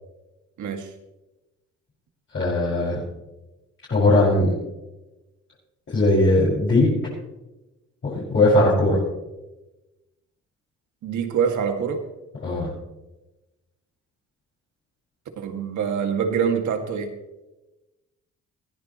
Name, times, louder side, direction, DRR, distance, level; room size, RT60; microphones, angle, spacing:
voice 1, 0.6-0.9 11.0-12.1 15.4-17.1, right 7 dB, 75° right, 5 dB, 2.1 m, -25 dB
voice 2, 2.3-3.0 3.9-4.5 5.9-6.9 8.0-9.0 12.4-12.7, left 2 dB, 45° left, -8 dB, 5.9 m, -19 dB
21.0 x 15.0 x 3.1 m, 1.0 s
cardioid pair, 90°, 30 cm